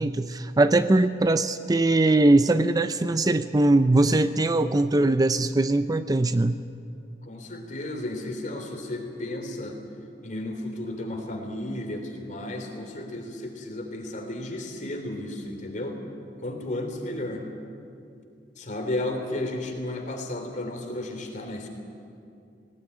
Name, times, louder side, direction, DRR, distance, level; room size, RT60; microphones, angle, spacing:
voice 1, 0.0-6.6, right 2 dB, 20° right, 11 dB, 0.5 m, -21 dB
voice 2, 7.2-9.8 10.2-16.0 16.4-17.4 18.6-21.7, left 1 dB, 45° left, 3 dB, 3.4 m, -33 dB
19.0 x 18.5 x 9.9 m, 2.5 s
head